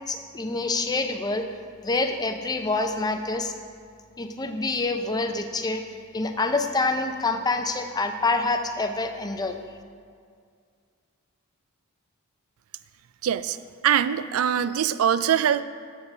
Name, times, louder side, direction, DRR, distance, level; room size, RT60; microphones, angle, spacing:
voice 1, 0.1-1.5 1.8-3.5 4.2-5.8 6.1-9.6, left 3 dB, 20° left, 6 dB, 0.5 m, -26 dB
voice 2, 13.2-13.6 13.8-15.6, right 9 dB, 70° right, 14 dB, 0.3 m, -22 dB
7.2 x 6.5 x 5.9 m, 2.1 s
head